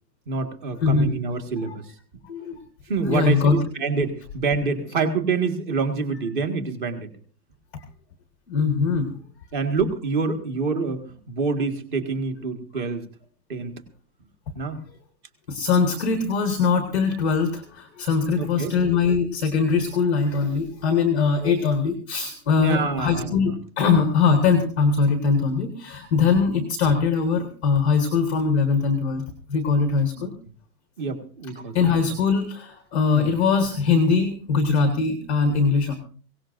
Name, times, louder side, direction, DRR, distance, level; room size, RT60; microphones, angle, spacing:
voice 1, 0.3-1.9 2.9-7.1 9.5-13.1 13.5-13.7 14.5-14.8 18.3-18.7 21.4-21.5 22.6-23.5 30.2-30.3 31.0-32.1 33.1-33.3, right 4 dB, 30° right, 6 dB, 1.8 m, -27 dB
voice 2, 0.8-1.1 1.7-1.8 2.2-2.6 3.1-3.6 7.7-7.8 8.5-9.2 15.5-29.2 29.5-30.3 31.7-35.9, left 5 dB, 10° left, 5 dB, 0.7 m, -21 dB
22.5 x 17.5 x 2.6 m, 0.42 s
hypercardioid pair, 180°, 48 cm